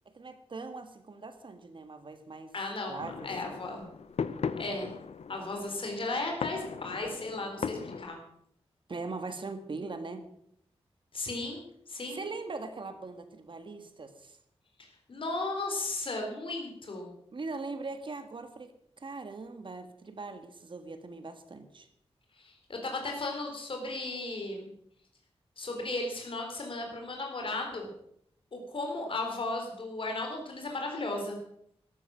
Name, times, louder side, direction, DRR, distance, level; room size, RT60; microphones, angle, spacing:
voice 1, 0.1-2.5 2.9-3.6 8.9-10.2 12.1-14.4 17.3-18.7 19.0-21.9, right 3 dB, 50° right, 8 dB, 1.7 m, -41 dB
voice 2, 2.5-3.9 4.6-4.9 5.3-8.2 11.1-12.2 15.1-17.1 22.4-24.7 25.6-27.9 28.5-31.4, left 2 dB, 55° left, 2 dB, 3.7 m, -35 dB
sound 1, 3.0-8.0, left 6 dB, 75° left, 0.8 m, -38 dB
13.0 x 13.0 x 6.3 m, 0.71 s
wide cardioid pair, 145°, 11 cm